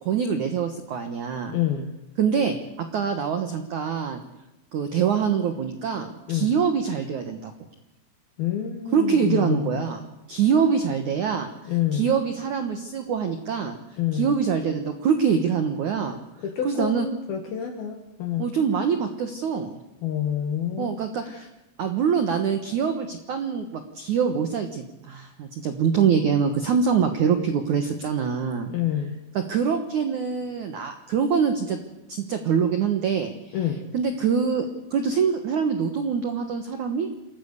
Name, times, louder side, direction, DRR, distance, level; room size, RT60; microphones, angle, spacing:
voice 1, 0.0-1.6 2.2-4.2 4.7-7.5 8.9-10.0 10.3-11.5 11.9-13.8 14.1-16.2 16.6-17.1 18.4-19.7 20.8-21.5 21.8-28.7 29.3-31.8 32.1-33.5 33.9-37.1, right 6 dB, 85° right, 7 dB, 1.7 m, -24 dB
voice 2, 1.5-1.9 6.3-6.5 8.4-9.8 11.6-12.1 14.0-14.4 16.4-18.5 20.0-20.9 21.2-21.4 28.7-29.2 33.5-33.9, left 10 dB, 60° left, 4 dB, 2.9 m, -28 dB
27.0 x 14.5 x 8.3 m, 0.95 s
omnidirectional pair, 5.7 m